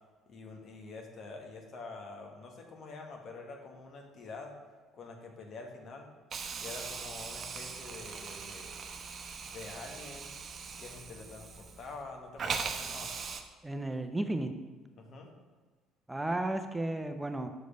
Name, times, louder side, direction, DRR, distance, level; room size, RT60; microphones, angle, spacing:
voice 1, 0.3-4.5 4.9-6.1 6.6-8.8 9.5-10.4 10.8-13.1 15.0-15.3, left 3 dB, 55° left, 2 dB, 1.5 m, -46 dB
Hiss, 6.3-12.0 12.4-13.4, right 5 dB, 45° right, 0.9 m, -40 dB
voice 2, 13.6-14.5 16.1-17.5, right 2 dB, 10° right, 7 dB, 0.8 m, -33 dB
6.6 x 5.0 x 5.2 m, 1.4 s
supercardioid pair, 70°, 0 cm